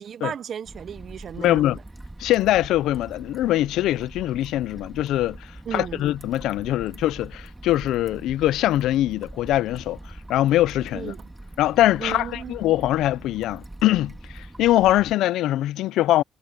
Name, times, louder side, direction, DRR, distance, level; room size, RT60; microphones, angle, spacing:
voice 1, 0.0-1.8 5.7-6.0 10.9-11.2 12.0-12.6, right 8 dB, 50° right, 0.5 m, -34 dB
sound 1, 0.6-15.1, right 1 dB, 10° right, 2.5 m, -42 dB
voice 2, 1.4-1.8 2.2-10.0 10.3-11.1 11.6-16.2, left 14 dB, 90° left, 0.4 m, -22 dB
cardioid pair, 125°, 0 cm